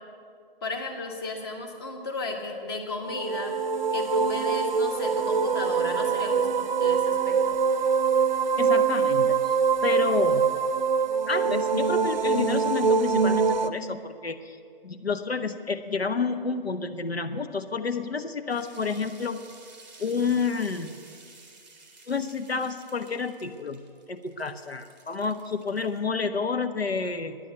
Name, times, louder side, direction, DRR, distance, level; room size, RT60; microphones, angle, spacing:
voice 1, 0.6-3.5 3.9-7.6, left 3 dB, 25° left, 2 dB, 1.3 m, -34 dB
sound 1, 3.1-13.7, right 5 dB, 50° right, 0.6 m, -24 dB
voice 2, 8.6-9.5 9.8-10.5 11.3-14.6 14.8-19.4 20.0-20.9 22.1-27.4, left 5 dB, 80° left, 9 dB, 0.8 m, -29 dB
sound 2, 18.5-26.0, right 3 dB, 5° right, 0.9 m, -52 dB
9.9 x 9.2 x 9.0 m, 2.2 s
figure-of-eight pair, 145°, 30 cm